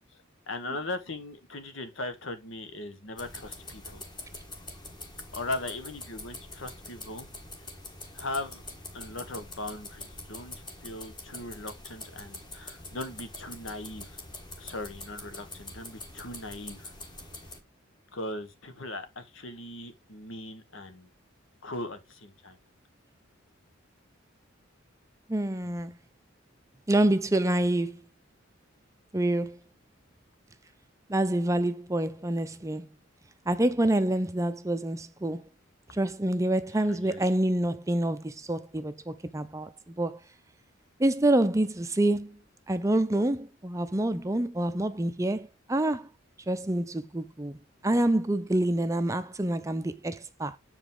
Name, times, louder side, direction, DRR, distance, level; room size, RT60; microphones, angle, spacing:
voice 1, 0.1-4.0 5.3-7.3 8.1-8.6 8.9-14.2 14.6-16.9 18.1-21.1 21.6-22.6 36.8-37.2, left 2 dB, 70° left, 1.3 m, -39 dB
sound 1, 3.2-17.6, left 2 dB, 20° left, 1.3 m, -44 dB
voice 2, 25.3-26.0 26.9-28.0 29.1-29.6 31.1-32.9 33.5-35.5 35.9-40.2 41.0-42.4 42.7-46.1 46.5-50.6, right 1 dB, 15° right, 0.5 m, -27 dB
7.1 x 5.1 x 3.7 m
head